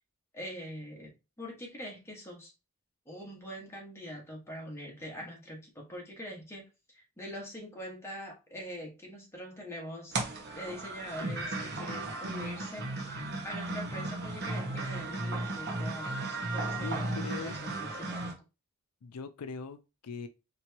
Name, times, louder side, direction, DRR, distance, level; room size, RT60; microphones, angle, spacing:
voice 1, 0.3-2.5 3.0-6.7 6.9-10.2 10.5-18.4, equal, 10° left, 1.6 m, -43 dB
sound 1, 10.1-18.3, right 2 dB, 50° right, 1.3 m, -35 dB
voice 2, 16.7-17.6 19.0-20.3, left 4 dB, 85° left, 0.5 m, -41 dB
4.5 x 3.3 x 2.9 m
head